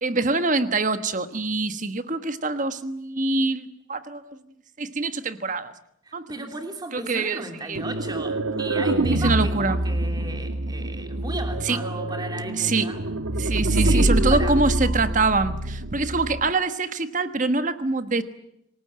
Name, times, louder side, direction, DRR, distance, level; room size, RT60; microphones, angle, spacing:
voice 1, 0.0-4.4 4.8-5.7 6.1-6.3 6.9-7.4 7.7-7.8 9.2-9.8 11.6-11.8 12.6-12.9 13.4-18.2, right 3 dB, 40° right, 10 dB, 1.4 m, -24 dB
voice 2, 6.0-13.0 13.4-14.6, right 2 dB, 20° right, 5 dB, 3.1 m, -35 dB
sound 1, 7.7-16.5, right 1 dB, 85° right, 1.3 m, -25 dB
26.5 x 19.0 x 8.8 m, 0.79 s
head